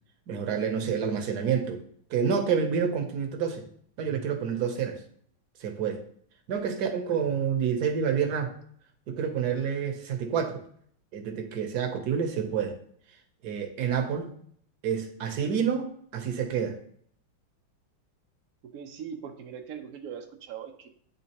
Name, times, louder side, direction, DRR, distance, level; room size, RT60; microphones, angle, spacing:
voice 1, 0.3-1.8 2.1-3.6 4.0-5.0 5.6-6.0 6.5-8.5 9.1-10.6 11.1-12.8 13.4-14.3 14.8-16.8, right 7 dB, 60° right, 4 dB, 1.1 m, -28 dB
voice 2, 18.6-20.9, right 7 dB, 75° right, 4 dB, 0.8 m, -40 dB
9.4 x 3.6 x 2.9 m, 0.62 s
omnidirectional pair, 2.2 m